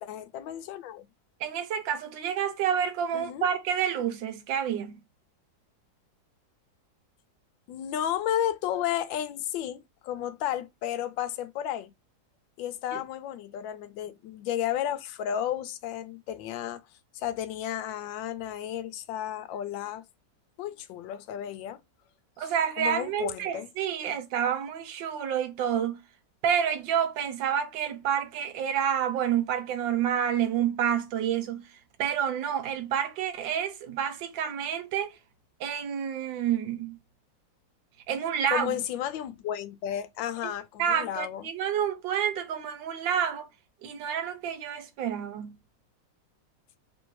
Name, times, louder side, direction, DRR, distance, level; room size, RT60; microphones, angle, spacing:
voice 1, 0.0-1.0 3.1-3.5 7.7-11.9 12.6-16.8 17.1-20.0 20.6-21.8 22.4-23.7 38.5-41.4, left 11 dB, 90° left, 1.3 m, -33 dB
voice 2, 1.4-5.0 12.9-13.0 22.4-26.0 26.4-31.6 32.0-35.1 35.6-37.0 38.1-38.8 40.4-40.5 40.8-43.5 43.8-45.6, right 8 dB, 90° right, 1.5 m, -29 dB
3.4 x 2.6 x 4.4 m
omnidirectional pair, 2.0 m